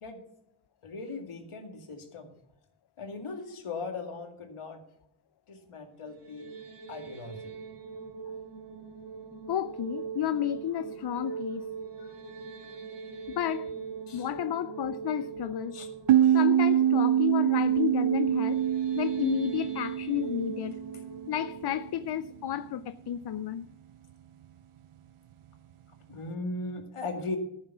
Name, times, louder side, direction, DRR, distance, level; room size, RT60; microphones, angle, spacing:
voice 1, 0.8-2.3 3.0-4.8 5.5-6.5 6.9-7.6 14.1-14.3 15.7-15.9 26.1-27.4, left 3 dB, 85° left, 2.2 m, -38 dB
sound 1, 6.1-23.2, right 5 dB, 55° right, 2.5 m, -41 dB
voice 2, 9.5-11.7 12.0-12.1 13.3-13.7 14.1-15.8 16.3-18.6 18.9-20.8 21.3-23.7, left 10 dB, 55° left, 0.5 m, -32 dB
sound 2, 16.1-21.4, right 10 dB, 80° right, 0.6 m, -25 dB
14.5 x 7.4 x 6.0 m
wide cardioid pair, 120°, 50 cm